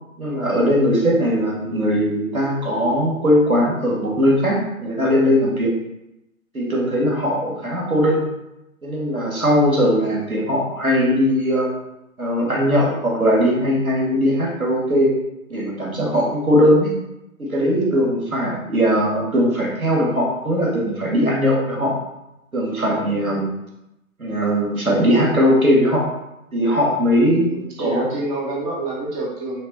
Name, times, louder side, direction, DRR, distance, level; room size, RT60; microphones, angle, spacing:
voice 1, 0.2-5.7 6.5-8.3 8.8-11.7 12.2-15.1 15.5-16.9 17.4-21.9 22.5-23.5 24.2-26.0 26.5-27.5 27.8-28.1, equal, 90° right, -3 dB, 2.3 m, -19 dB
voice 2, 27.5-29.6, right 2 dB, 25° right, -5 dB, 2.3 m, -27 dB
10.0 x 3.4 x 4.2 m, 0.91 s
figure-of-eight pair, 130°, 41 cm